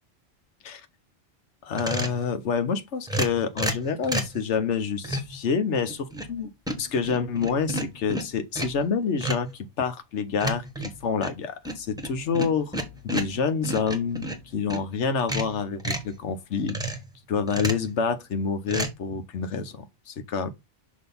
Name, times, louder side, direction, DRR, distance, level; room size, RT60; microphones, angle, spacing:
voice 1, 1.6-6.5 6.8-12.8 13.0-16.8 17.3-20.5, left 6 dB, 75° left, 1.1 m, -28 dB
sound 1, 1.7-2.2 3.1-4.4 5.0-5.4 5.9-6.4 6.7-8.8 9.2-9.5 10.4-14.9 15.2-16.1 16.7-17.1 17.5-17.9 18.7-18.9, right 1 dB, 5° right, 1.0 m, -31 dB
6.2 x 2.8 x 5.4 m
omnidirectional pair, 1.2 m